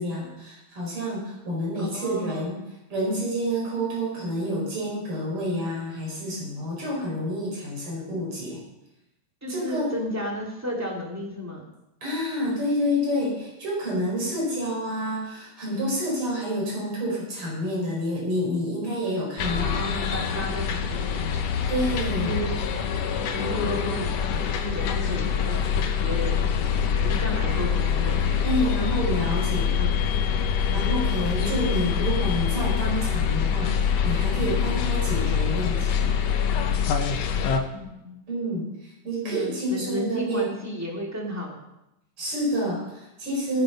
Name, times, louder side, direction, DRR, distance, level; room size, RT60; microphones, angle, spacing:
voice 1, 0.0-2.6 2.9-8.6 9.5-9.9 12.0-19.8 21.7-22.4 28.4-29.7 30.7-36.1 38.3-38.7 39.0-40.5 42.2-43.6, equal, 40° right, -3 dB, 6.2 m, -28 dB
voice 2, 1.8-2.6 9.4-11.6 19.7-21.6 22.1-22.6 23.3-24.0 24.6-25.5 26.0-26.4 26.7-28.2 29.7-30.0 30.7-30.9 37.4-38.1 39.2-41.6, equal, 5° right, -2 dB, 2.5 m, -33 dB
sound 1, 19.4-37.6, left 7 dB, 65° left, 1.9 m, -25 dB
16.5 x 9.7 x 5.4 m, 0.89 s
omnidirectional pair, 3.6 m